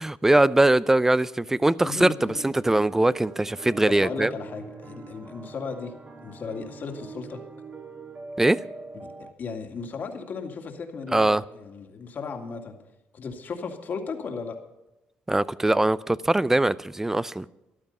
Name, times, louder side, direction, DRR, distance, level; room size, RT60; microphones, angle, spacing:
voice 1, 0.0-4.3 8.4-8.6 11.1-11.4 15.3-17.5, right 2 dB, 10° right, 0.5 m, -21 dB
voice 2, 1.8-2.4 3.9-5.9 6.2-7.4 9.0-12.8 13.1-14.6, left 5 dB, 50° left, 2.3 m, -35 dB
sound 1, 2.2-9.3, right 3 dB, 35° right, 1.9 m, -43 dB
14.0 x 12.0 x 5.5 m
cardioid pair, 100°, 4 cm